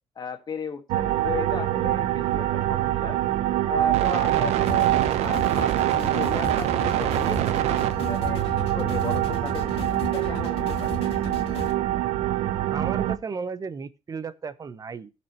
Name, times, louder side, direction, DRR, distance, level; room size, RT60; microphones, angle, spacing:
voice 1, 0.1-3.2 3.7-4.9 5.2-7.4 8.0-11.0, left 6 dB, 40° left, 1.7 m, -35 dB
sound 1, 0.9-13.2, right 13 dB, 85° right, 0.8 m, -24 dB
sound 2, 4.7-11.7, left 6 dB, 65° left, 2.0 m, -36 dB
voice 2, 12.7-15.1, right 5 dB, 35° right, 0.9 m, -34 dB
16.0 x 6.2 x 3.0 m
cardioid pair, 100°, 11 cm